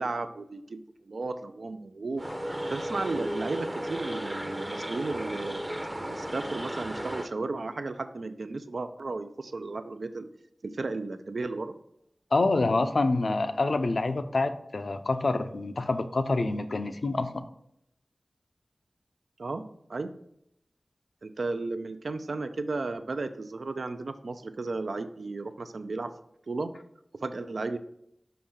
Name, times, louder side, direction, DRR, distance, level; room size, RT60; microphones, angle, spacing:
voice 1, 0.0-2.2 2.7-5.6 5.9-10.3 10.6-11.7 19.4-19.6 19.9-20.1 21.2-26.1 26.5-26.7 27.2-27.8, right 3 dB, 85° right, 9 dB, 0.4 m, -34 dB
sound 1, 2.2-7.3, equal, 20° right, 0.6 m, -35 dB
voice 2, 12.3-17.4, left 3 dB, 75° left, 9 dB, 0.5 m, -27 dB
5.7 x 5.2 x 3.7 m, 0.74 s
wide cardioid pair, 65°, 0 cm